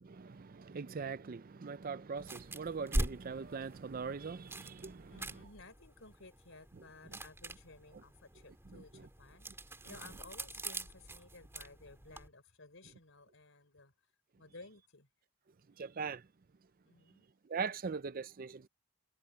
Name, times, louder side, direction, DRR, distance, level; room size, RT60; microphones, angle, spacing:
voice 1, 0.0-5.5 6.8-6.9 8.7-9.1 15.8-16.3 17.4-18.7, right 5 dB, 40° right, 0.5 m, -41 dB
sound 1, 2.2-12.3, right 1 dB, 10° right, 2.8 m, -43 dB
voice 2, 5.1-13.9 14.4-15.1 16.8-17.3, left 3 dB, 60° left, 4.6 m, -56 dB
head